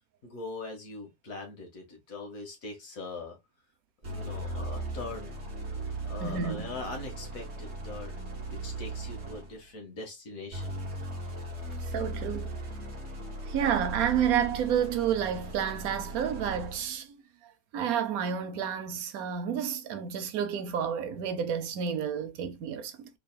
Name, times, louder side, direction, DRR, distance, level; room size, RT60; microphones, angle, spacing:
voice 1, 0.2-3.4 4.0-5.4 6.1-10.8, left 3 dB, 60° left, 1.9 m, -41 dB
sound 1, 4.0-9.6 10.5-16.9, right 2 dB, 45° right, 1.7 m, -38 dB
voice 2, 6.2-6.8 11.9-12.5 13.5-17.2 17.7-23.1, right 8 dB, 70° right, 1.1 m, -30 dB
3.9 x 3.9 x 2.2 m
omnidirectional pair, 1.6 m